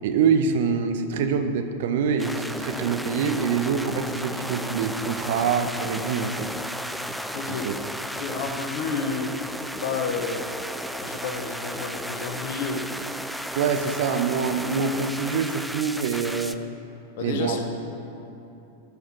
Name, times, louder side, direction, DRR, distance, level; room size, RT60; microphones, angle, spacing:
voice 1, 0.0-6.5 7.5-7.7 13.5-16.6 17.2-17.6, right 6 dB, 55° right, 7 dB, 0.9 m, -25 dB
sound 1, 2.2-16.5, equal, ahead, 0.5 m, -34 dB
voice 2, 7.3-7.7 8.1-9.3 9.8-10.4 11.0-12.8 17.2-17.6, left 5 dB, 50° left, 4 dB, 1.3 m, -30 dB
13.0 x 6.2 x 7.6 m, 2.8 s
figure-of-eight pair, 90°, 0 cm